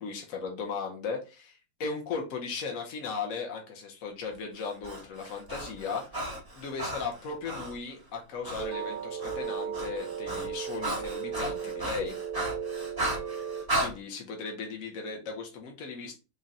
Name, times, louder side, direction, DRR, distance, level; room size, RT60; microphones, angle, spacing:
voice 1, 0.0-12.2 13.8-16.1, left 5 dB, 60° left, 1 dB, 0.8 m, -37 dB
Breathing, 4.6-7.8 8.4-8.7 9.0-13.9, right 1 dB, 35° right, 0.3 m, -35 dB
sound 1, 8.6-13.6, right 7 dB, 80° right, 0.9 m, -36 dB
3.8 x 2.2 x 3.9 m, 0.30 s
omnidirectional pair, 2.3 m